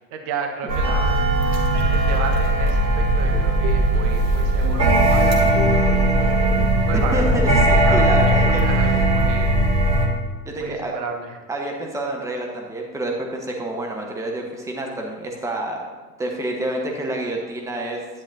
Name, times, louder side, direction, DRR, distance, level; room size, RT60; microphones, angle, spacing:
voice 1, 0.1-1.1 1.4-6.0 6.4-6.5 6.8-7.4 7.8-9.8 10.6-11.4, right 5 dB, 40° right, 3 dB, 1.3 m, -33 dB
sound 1, 0.7-10.1, right 1 dB, 90° right, 1.6 m, -18 dB
sound 2, 3.3-4.2 4.6-6.8 7.1-7.7, left 6 dB, 55° left, 0.9 m, -32 dB
voice 2, 7.1-8.8 10.4-10.9 11.5-15.8 16.2-18.0, right 1 dB, 5° right, 1 dB, 1.2 m, -28 dB
10.5 x 9.7 x 2.7 m, 1.3 s
figure-of-eight pair, 90°, 49 cm